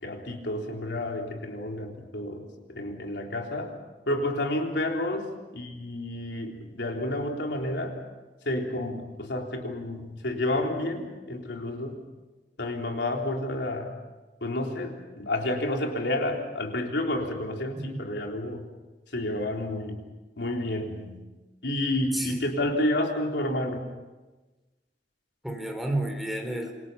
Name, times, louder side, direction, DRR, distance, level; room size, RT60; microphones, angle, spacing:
voice 1, 0.0-3.7 4.1-8.0 8.5-12.0 12.6-13.9 14.4-18.6 19.1-20.0 20.4-21.2 21.6-23.8, left 1 dB, 80° left, 1 dB, 3.6 m, -30 dB
voice 2, 22.1-22.6 25.4-26.7, right 1 dB, ahead, 3 dB, 3.6 m, -31 dB
27.5 x 24.0 x 5.7 m, 1.1 s
head